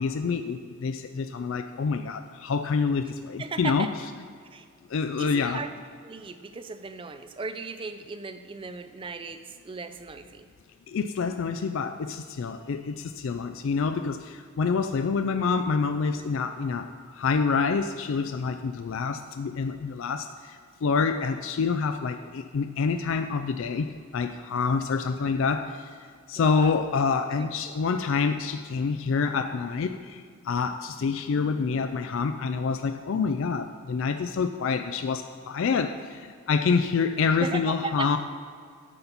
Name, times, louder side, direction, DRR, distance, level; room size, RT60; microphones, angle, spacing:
voice 1, 0.0-3.9 4.9-5.6 10.9-23.9 24.1-25.9 26.3-38.2, left 5 dB, 65° left, 8 dB, 0.4 m, -27 dB
voice 2, 3.4-3.9 4.5-4.7 5.2-5.7 6.0-10.4 26.4-26.8 27.4-27.5 37.4-38.2, right 4 dB, 25° right, 9 dB, 0.4 m, -36 dB
9.9 x 4.0 x 7.0 m, 2.1 s
head